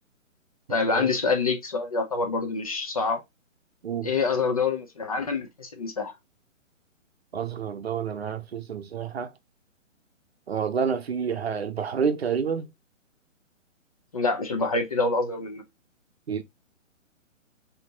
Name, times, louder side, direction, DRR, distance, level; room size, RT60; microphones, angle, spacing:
voice 1, 0.7-3.2 4.0-6.1 14.1-15.6, left 4 dB, 30° left, 0.5 m, -26 dB
voice 2, 7.3-9.3 10.5-12.7 16.3-16.4, right 6 dB, 55° right, 0.7 m, -28 dB
5.8 x 2.8 x 2.7 m
figure-of-eight pair, 125°, 39 cm